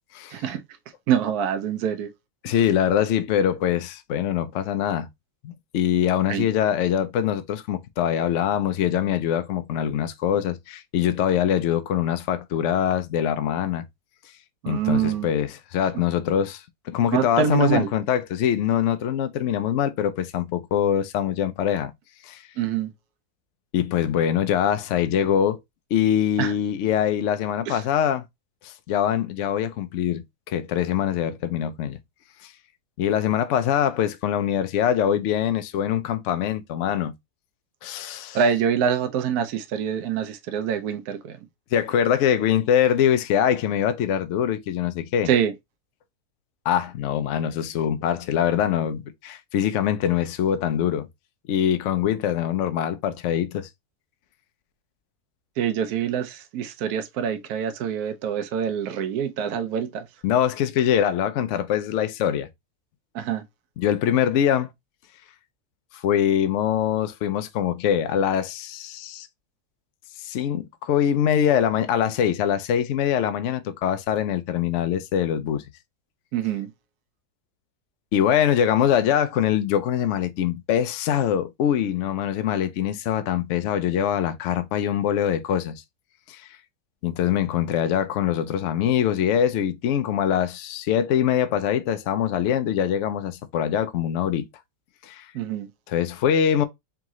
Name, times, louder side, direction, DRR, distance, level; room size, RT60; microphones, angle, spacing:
voice 1, 0.3-0.6 1.1-2.1 2.5-2.6 6.3-6.5 14.6-15.3 17.1-17.9 22.6-22.9 26.4-26.5 27.7-27.8 38.3-41.4 45.3-45.5 55.6-60.1 63.1-63.4 76.3-76.7 95.3-95.7, right 8 dB, 70° right, 1.1 m, -25 dB
voice 2, 2.4-5.1 5.4-13.9 14.7-21.9 22.2-22.4 23.7-25.6 25.9-28.2 28.6-32.0 32.4-32.5 33.0-37.1 37.8-38.4 41.7-45.3 46.7-51.1 51.5-53.7 60.2-62.5 63.8-64.7 66.0-69.3 70.2-75.6 78.1-85.8 86.3-86.5 87.0-94.5 95.0-95.3 95.9-96.6, left 9 dB, 65° left, 0.7 m, -23 dB
3.7 x 3.6 x 3.0 m
omnidirectional pair, 1.7 m